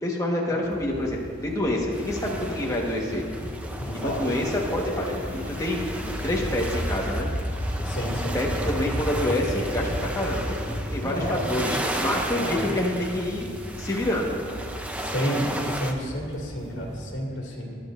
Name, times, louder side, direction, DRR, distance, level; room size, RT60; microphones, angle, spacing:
voice 1, 0.0-3.2 4.0-7.3 8.3-13.5 13.8-14.4, left 1 dB, 15° left, -2 dB, 1.4 m, -27 dB
sound 1, 0.6-16.9, equal, 30° right, 2.6 m, -34 dB
sound 2, 1.9-15.9, right 1 dB, 5° right, 0.6 m, -35 dB
voice 2, 3.8-4.2 7.8-8.4 11.0-11.4 11.7-11.8 12.3-12.7 15.0-17.8, equal, 70° left, -2 dB, 2.2 m, -31 dB
23.5 x 8.7 x 2.6 m, 2.2 s
head